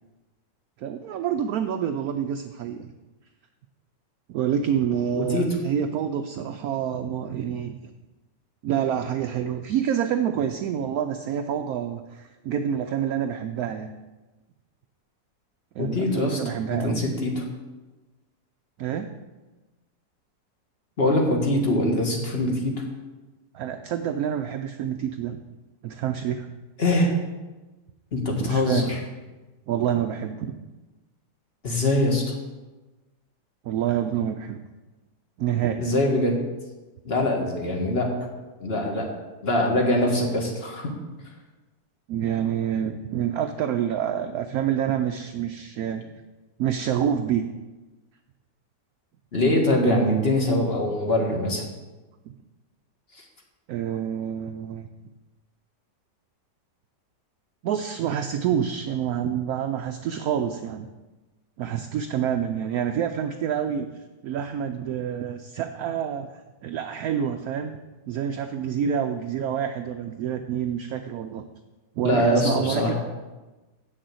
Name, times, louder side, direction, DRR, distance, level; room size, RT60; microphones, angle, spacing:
voice 1, 0.8-2.9 4.3-7.8 8.6-14.0 15.8-17.0 18.8-19.1 23.5-25.4 25.8-26.5 28.4-28.9 29.7-30.6 33.6-34.6 35.4-35.8 42.1-46.1 46.6-47.5 49.8-50.1 52.3-52.4 53.7-54.9 57.6-60.9 61.6-63.9 64.2-67.8 68.1-71.4 72.0-72.9, right 9 dB, 70° right, 6 dB, 0.9 m, -27 dB
voice 2, 15.8-16.4 16.7-17.4 21.0-22.7 26.8-27.1 28.1-29.0 31.6-32.4 35.8-36.3 37.1-38.1 38.6-39.1 39.4-40.9 49.3-51.6 53.2-53.3 72.0-72.9, left 1 dB, 35° left, 1 dB, 1.8 m, -23 dB
7.8 x 6.5 x 7.7 m, 1.2 s
omnidirectional pair, 1.9 m